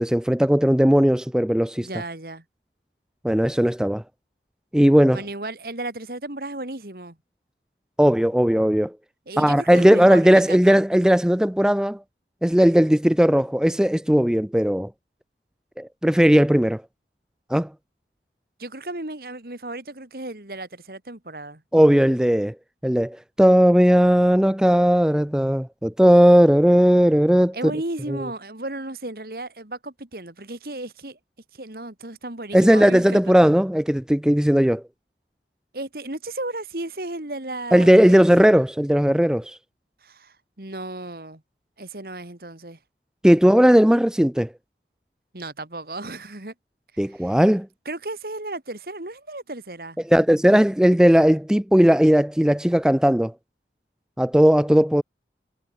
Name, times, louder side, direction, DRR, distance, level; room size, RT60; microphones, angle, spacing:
voice 1, 0.0-1.9 3.2-4.0 4.7-5.2 8.0-8.9 9.4-12.0 12.4-14.9 15.8-16.8 17.5-17.7 21.7-22.5 22.8-27.6 32.5-34.8 37.7-39.6 43.2-44.5 47.0-47.7 50.1-53.3 54.2-55.0, equal, 5° right, 0.4 m, -17 dB
voice 2, 1.8-2.4 5.1-7.2 9.3-10.8 18.6-21.6 27.5-31.2 31.5-33.5 35.7-38.3 40.0-41.4 41.8-42.8 45.3-46.5 47.0-47.4 47.9-50.0, right 2 dB, 55° right, 2.4 m, -34 dB
head